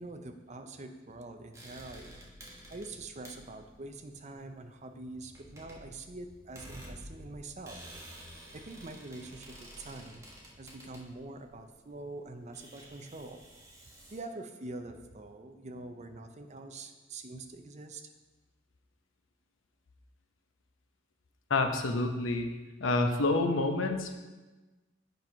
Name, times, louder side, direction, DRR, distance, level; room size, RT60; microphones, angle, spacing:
voice 1, 0.0-2.2 2.7-7.8 8.5-10.2 10.6-13.4 14.1-18.0, right 2 dB, 35° right, 7 dB, 0.6 m, -45 dB
sound 1, 1.5-14.2, equal, 15° right, 1.3 m, -51 dB
voice 2, 21.5-22.5 22.8-24.2, left 2 dB, 85° left, 5 dB, 0.8 m, -28 dB
8.0 x 4.5 x 5.4 m, 1.2 s
head